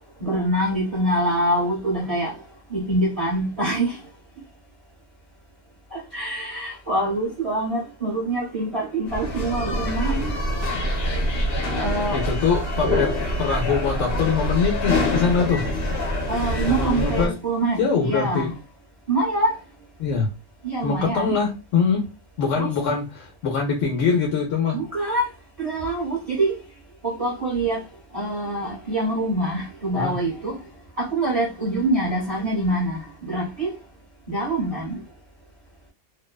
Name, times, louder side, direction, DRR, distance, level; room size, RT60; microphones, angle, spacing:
voice 1, 0.2-2.3 2.7-4.0 5.9-10.3 11.8-12.2 16.3-18.5 19.1-19.5 20.6-21.3 22.6-22.7 24.7-25.3 25.6-26.5 27.0-27.8 28.1-30.6 31.0-33.7 34.3-35.0, right 1 dB, 35° right, 0.8 m, -25 dB
sound 1, 9.1-17.3, left 1 dB, 55° left, 1.0 m, -25 dB
voice 2, 12.1-13.1 13.4-15.6 16.7-17.3 17.8-18.5 20.0-20.3 20.8-22.0 22.4-24.8 30.0-30.1, left 5 dB, 85° left, 1.0 m, -23 dB
2.6 x 2.1 x 2.2 m
omnidirectional pair, 1.3 m